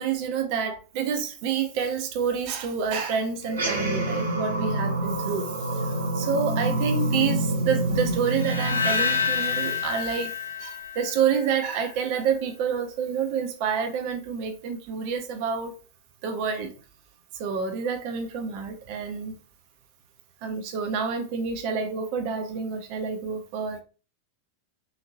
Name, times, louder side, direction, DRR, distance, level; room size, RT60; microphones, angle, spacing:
voice 1, 0.0-10.3 10.6-15.8 16.2-16.7 17.3-19.4 20.4-23.8, right 6 dB, 45° right, 0.8 m, -28 dB
sound 1, 3.4-10.1, right 1 dB, 70° right, 1.3 m, -27 dB
sound 2, 8.3-11.5, left 6 dB, 80° left, 0.5 m, -28 dB
5.0 x 2.8 x 2.6 m
figure-of-eight pair, 90°, 0 cm